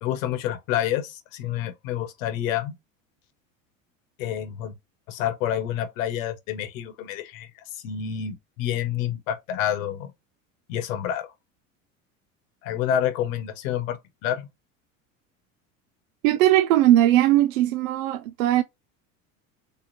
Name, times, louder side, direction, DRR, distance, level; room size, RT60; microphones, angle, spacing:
voice 1, 0.0-2.7 4.2-4.7 5.1-7.5 7.8-10.1 10.7-11.3 12.6-14.5, left 10 dB, 70° left, 1.0 m, -28 dB
voice 2, 16.2-18.6, right 13 dB, 80° right, 0.6 m, -19 dB
3.5 x 3.0 x 2.6 m
hypercardioid pair, 85°, 40 cm